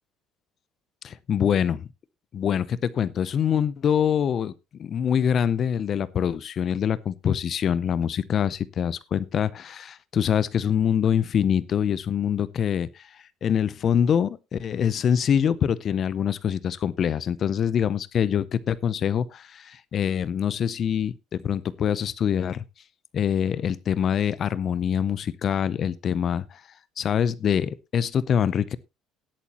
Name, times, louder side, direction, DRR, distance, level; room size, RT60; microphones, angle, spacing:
voice 1, 1.0-1.9 2.3-22.6 23.1-26.6 27.0-28.8, left 8 dB, 35° left, 0.5 m, -25 dB
17.5 x 8.5 x 2.9 m
cardioid pair, 170°, 0 cm